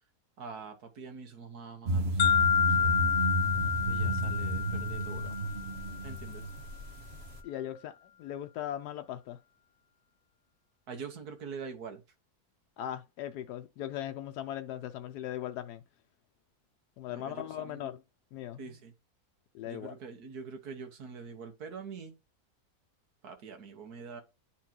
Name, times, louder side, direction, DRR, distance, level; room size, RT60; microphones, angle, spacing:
voice 1, 0.4-3.0 3.9-5.4 6.0-6.4 10.9-12.0 17.1-17.9 18.6-18.9 19.7-22.1 23.2-24.2, right 5 dB, 75° right, 1.8 m, -45 dB
sound 1, 1.9-7.4, right 1 dB, 45° right, 1.3 m, -32 dB
sound 2, 2.2-6.2, left 8 dB, 65° left, 1.1 m, -29 dB
voice 2, 7.4-9.4 12.8-15.8 17.0-18.0 18.3-18.8 19.5-19.9, left 11 dB, 85° left, 1.1 m, -39 dB
10.0 x 4.3 x 2.9 m
omnidirectional pair, 1.7 m